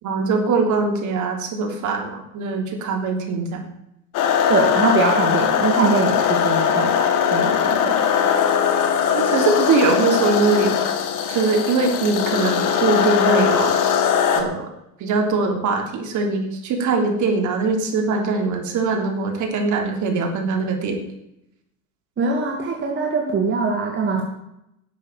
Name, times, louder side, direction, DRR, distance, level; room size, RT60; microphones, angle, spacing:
voice 1, 0.0-3.6 9.2-10.8 11.3-13.8 14.3-14.7 15.0-21.0, right 4 dB, 40° right, 4 dB, 3.4 m, -22 dB
sound 1, 4.1-14.4, left 8 dB, 45° left, 2.2 m, -20 dB
voice 2, 4.5-8.2 22.2-24.2, right 3 dB, 25° right, 0 dB, 2.6 m, -22 dB
11.5 x 7.4 x 9.0 m, 0.81 s
hypercardioid pair, 95°, 43 cm